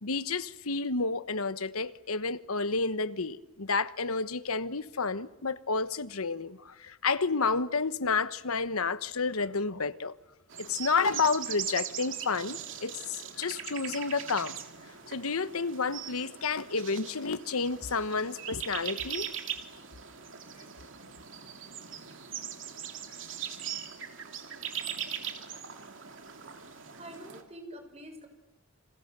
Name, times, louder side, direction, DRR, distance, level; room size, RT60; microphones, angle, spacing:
voice 1, 0.0-10.1 10.6-14.6 15.0-19.3, left 4 dB, 85° left, 1.2 m, -30 dB
sound 1, 10.5-27.4, right 9 dB, 60° right, 2.9 m, -40 dB
voice 2, 27.0-28.3, right 1 dB, 30° right, 6.1 m, -45 dB
29.5 x 27.0 x 6.8 m
head